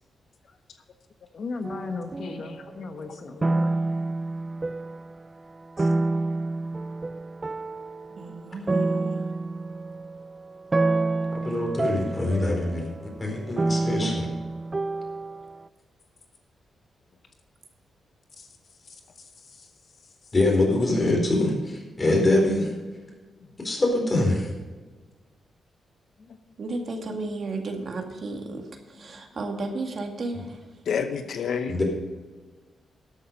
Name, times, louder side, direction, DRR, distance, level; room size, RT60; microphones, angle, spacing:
voice 1, 1.3-3.7 5.8-5.9 8.3-8.5 18.4-18.5 18.8-19.7 20.0-20.3 23.4-23.6 26.3-26.4 26.8-26.9 29.0-29.2, left 4 dB, 55° left, 5 dB, 1.1 m, -38 dB
sound 1, 1.6-3.1 3.4-5.2 5.8-15.6, right 2 dB, 25° right, 0.4 m, -28 dB
voice 2, 2.2-3.2 30.9-31.8, left 6 dB, 75° left, 8 dB, 0.9 m, -31 dB
voice 3, 8.2-9.2 14.0-14.1 26.6-30.6, right 2 dB, 50° right, 3 dB, 2.0 m, -33 dB
voice 4, 11.3-12.9 13.2-14.2 20.3-22.7 23.6-24.5 31.7-31.8, left 2 dB, 25° left, 0 dB, 4.4 m, -24 dB
13.0 x 8.6 x 5.3 m, 1.3 s
cardioid pair, 110°, 0 cm